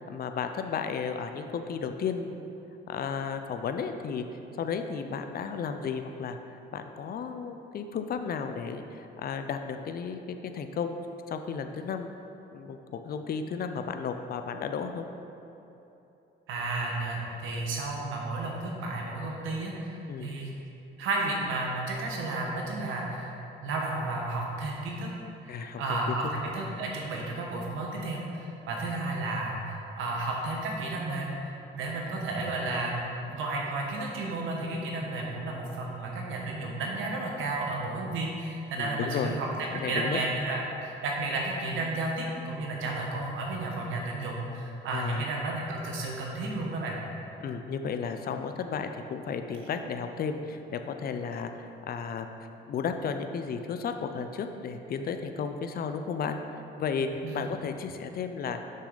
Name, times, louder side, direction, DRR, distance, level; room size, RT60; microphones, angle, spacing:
voice 1, 0.0-2.5 2.9-4.2 4.6-6.4 6.7-10.2 10.5-11.0 11.3-12.1 12.5-15.1 20.1-20.3 25.5-26.2 26.6-26.8 38.8-39.4 39.7-40.2 44.9-45.3 47.4-56.4 56.8-57.1 57.3-58.6, left 6 dB, 50° left, 7 dB, 0.5 m, -33 dB
voice 2, 16.5-20.5 21.0-23.4 23.6-25.1 25.4-39.5 39.9-47.0 57.2-57.5, right 2 dB, 85° right, -1 dB, 1.2 m, -32 dB
6.6 x 6.3 x 4.0 m, 3.0 s
cardioid pair, 90°, 20 cm